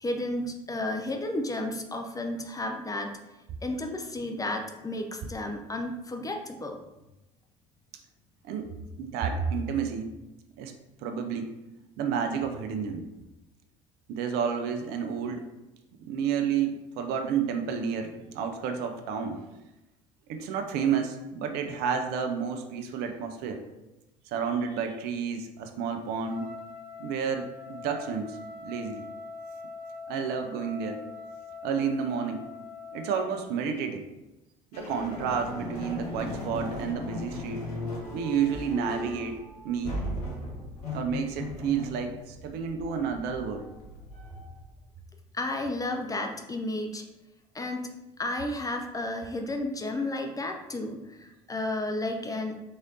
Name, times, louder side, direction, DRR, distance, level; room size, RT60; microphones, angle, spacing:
voice 1, 0.0-3.1 3.6-6.8 45.3-47.0 47.5-47.9 48.2-52.6, left 1 dB, 20° left, 3 dB, 0.5 m, -32 dB
voice 2, 8.4-10.1 10.6-10.7 11.0-11.5 12.0-13.1 14.1-15.5 16.0-19.5 20.3-23.7 24.3-26.5 27.0-29.0 30.1-31.1 31.6-32.5 32.9-34.1 34.7-37.7 38.1-39.4 39.6-40.0 40.9-43.7, right 6 dB, 60° right, 6 dB, 0.5 m, -30 dB
Trumpet, 26.1-33.5, left 4 dB, 55° left, 1.0 m, -43 dB
sound 1, 34.7-44.8, left 1 dB, 85° left, 0.7 m, -37 dB
3.7 x 3.2 x 2.7 m, 0.99 s
figure-of-eight pair, 60°, 19 cm